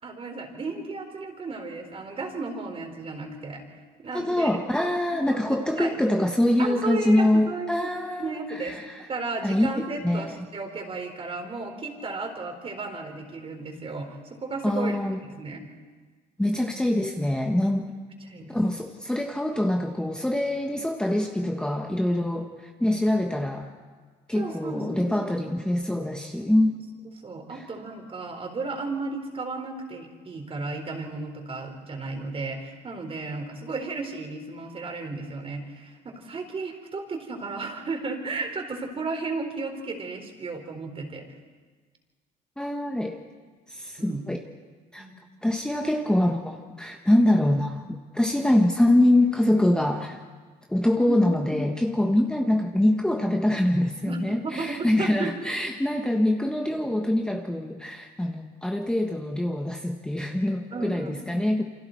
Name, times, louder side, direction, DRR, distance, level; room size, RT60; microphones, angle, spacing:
voice 1, 0.0-3.6 4.0-4.5 5.3-5.4 5.7-6.0 6.6-7.9 8.2-8.8 9.1-15.0 15.2-15.6 18.3-18.6 24.3-25.3 26.7-26.8 27.2-41.2 44.0-44.3 45.0-45.1 51.1-51.2 54.0-54.2 54.4-55.3 60.7-61.5, right 3 dB, 35° right, 4 dB, 4.0 m, -34 dB
voice 2, 4.1-9.1 9.4-9.7 10.0-10.4 14.6-15.2 16.4-17.9 18.5-23.7 24.3-26.7 27.5-27.6 42.6-43.2 43.7-44.4 44.9-45.1 45.4-47.8 48.1-50.2 50.7-61.6, left 1 dB, 5° left, 2 dB, 1.3 m, -24 dB
28.0 x 25.5 x 4.5 m, 1.4 s
cardioid pair, 110°, 17 cm